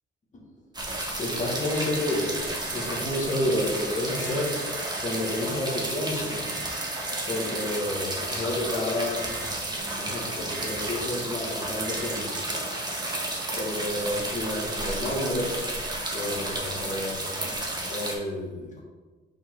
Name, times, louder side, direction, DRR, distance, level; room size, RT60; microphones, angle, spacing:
sound 1, 0.7-18.1, right 1 dB, 20° right, 1.6 m, -32 dB
voice 1, 1.1-2.3 2.6-4.7 5.0-6.7 7.3-9.3 9.8-12.4 13.6-15.6 16.1-17.3 17.9-18.8, left 1 dB, 40° left, -2 dB, 2.1 m, -30 dB
sound 2, 1.7-3.1 4.1-5.4 6.4-7.8 9.2-9.5 10.5-10.8 11.8-12.2, right 8 dB, 85° right, 1.0 m, -43 dB
5.9 x 5.0 x 3.9 m, 1.3 s
cardioid pair, 90°, 20 cm